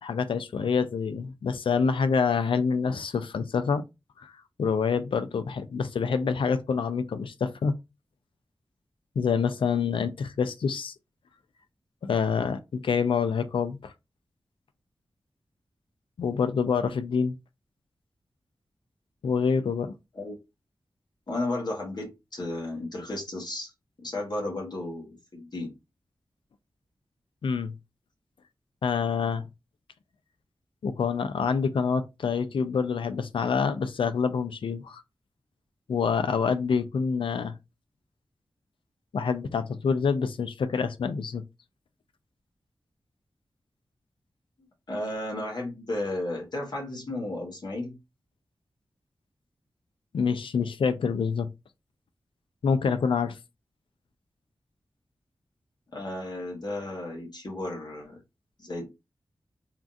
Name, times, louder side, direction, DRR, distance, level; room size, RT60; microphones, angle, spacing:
voice 1, 0.0-3.8 4.2-4.3 4.6-7.7 9.2-10.9 12.0-13.9 16.2-17.4 19.2-19.9 27.4-27.7 28.8-29.4 30.8-35.0 35.9-37.5 39.1-41.4 50.1-51.5 52.6-53.4, left 5 dB, 85° left, 0.4 m, -26 dB
voice 2, 21.3-23.7 24.0-25.7 44.9-48.0 55.9-58.2 58.6-58.9, left 1 dB, 55° left, 1.1 m, -33 dB
3.6 x 2.4 x 2.6 m
wide cardioid pair, 95°, 9 cm